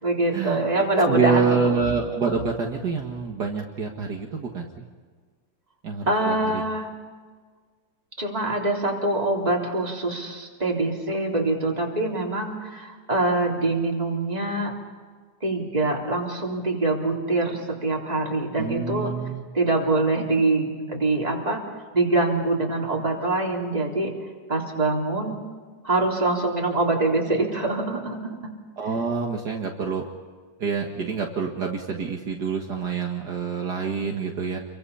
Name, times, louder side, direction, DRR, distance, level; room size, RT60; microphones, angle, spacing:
voice 1, 0.0-1.8 6.1-6.9 8.2-14.7 15.4-19.1 19.5-21.6 21.9-24.1 24.5-25.4 25.8-28.3, right 2 dB, 20° right, -1 dB, 3.8 m, -24 dB
voice 2, 1.0-4.8 5.8-6.6 18.6-19.4 28.8-30.0 30.6-34.6, right 5 dB, 60° right, 1 dB, 2.3 m, -27 dB
29.0 x 23.5 x 5.7 m, 1.5 s
omnidirectional pair, 2.1 m